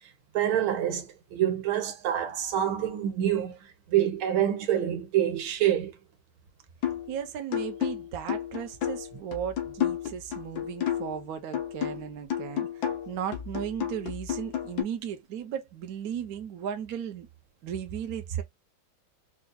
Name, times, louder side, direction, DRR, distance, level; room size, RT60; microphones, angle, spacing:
voice 1, 0.3-5.9, right 11 dB, 90° right, 1.8 m, -27 dB
sound 1, 6.8-7.1 7.5-11.2 11.5-14.8, left 10 dB, 60° left, 1.2 m, -32 dB
voice 2, 7.1-17.3 17.6-18.4, right 9 dB, 60° right, 1.1 m, -36 dB
4.8 x 2.5 x 2.2 m
omnidirectional pair, 2.2 m